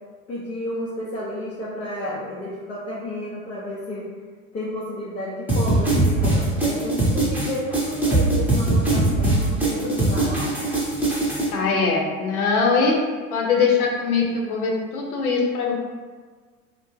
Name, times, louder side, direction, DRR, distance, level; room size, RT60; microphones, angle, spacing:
voice 1, 0.3-4.1 4.5-10.6, left 1 dB, 20° left, -8 dB, 0.3 m, -31 dB
sound 1, 5.5-11.5, right 2 dB, 5° right, 0.7 m, -21 dB
voice 2, 11.5-13.0 13.3-15.7, left 4 dB, 80° left, 0 dB, 0.7 m, -21 dB
2.5 x 2.1 x 3.0 m, 1.5 s
hypercardioid pair, 80°, 43 cm